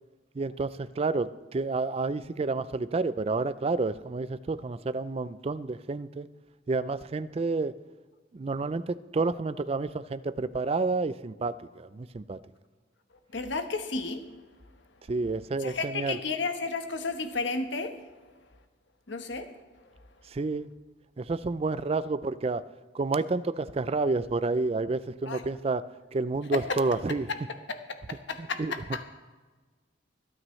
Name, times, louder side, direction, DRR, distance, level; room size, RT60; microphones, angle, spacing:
voice 1, 0.4-6.3 6.7-7.7 8.3-12.4 15.1-16.2 20.3-20.7 21.2-22.6 22.9-25.8 26.1-27.3 28.4-28.7, right 3 dB, 30° right, 15 dB, 0.4 m, -29 dB
voice 2, 13.3-14.2 15.6-18.0 19.1-19.5 25.3-25.4 26.5-26.8 27.3-27.4 27.7-27.8 28.1-29.0, left 4 dB, 65° left, 7 dB, 1.1 m, -32 dB
25.5 x 9.0 x 3.2 m, 1.3 s
head